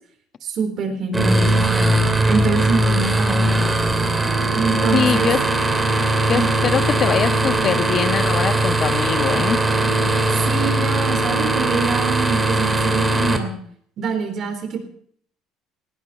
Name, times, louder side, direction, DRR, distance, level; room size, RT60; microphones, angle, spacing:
voice 1, 0.4-2.0 2.3-3.5 4.5-5.3 6.3-6.5 10.3-13.6 14.0-14.8, right 5 dB, 50° right, 7 dB, 4.0 m, -25 dB
sound 1, 1.1-13.4, right 2 dB, 15° right, 2.7 m, -19 dB
voice 2, 4.9-5.4 6.3-9.6, left 7 dB, 45° left, 10 dB, 1.2 m, -22 dB
19.0 x 16.0 x 4.4 m, 0.62 s
supercardioid pair, 100°, 0 cm